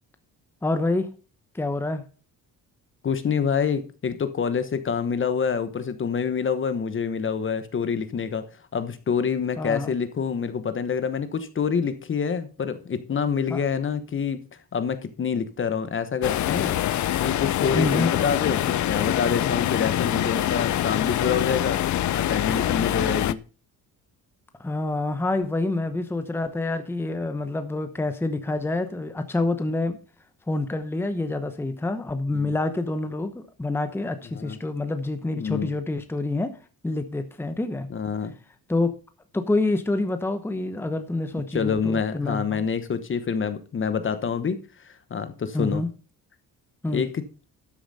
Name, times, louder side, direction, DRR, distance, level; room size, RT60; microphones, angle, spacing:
voice 1, 0.6-1.1 1.5-2.0 9.6-9.9 13.5-13.6 17.7-18.1 24.6-30.0 30.5-36.6 36.8-37.9 38.7-38.9 39.3-42.7 45.5-45.9 46.8-47.0, left 2 dB, 5° left, 9 dB, 0.9 m, -27 dB
voice 2, 3.0-8.5 8.7-14.4 14.7-16.8 17.2-21.8 22.2-23.4 32.3-32.5 34.3-34.6 35.3-35.7 37.9-38.3 41.5-45.8 46.9-47.2, left 6 dB, 35° left, 11 dB, 1.0 m, -27 dB
sound 1, 16.2-23.3, left 12 dB, 50° left, 0.6 m, -25 dB
12.5 x 7.1 x 4.1 m, 0.36 s
cardioid pair, 145°, 37 cm